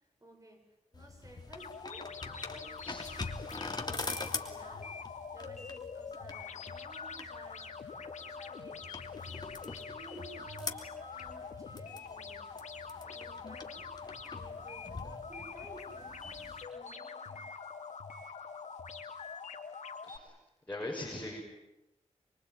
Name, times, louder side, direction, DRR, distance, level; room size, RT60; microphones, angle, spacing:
voice 1, 0.2-0.6 0.9-4.9 5.3-7.7 8.0-8.9 9.5-12.5 13.0-13.9 14.3-17.4, right 1 dB, 30° right, 3 dB, 7.6 m, -55 dB
sound 1, 0.9-16.6, left 3 dB, 35° left, 3.0 m, -44 dB
sound 2, 1.6-20.2, left 5 dB, 80° left, 2.9 m, -44 dB
voice 2, 20.0-20.4 20.7-21.4, left 1 dB, 15° left, -2 dB, 6.1 m, -40 dB
24.5 x 24.0 x 9.2 m, 0.92 s
wide cardioid pair, 85°, 12 cm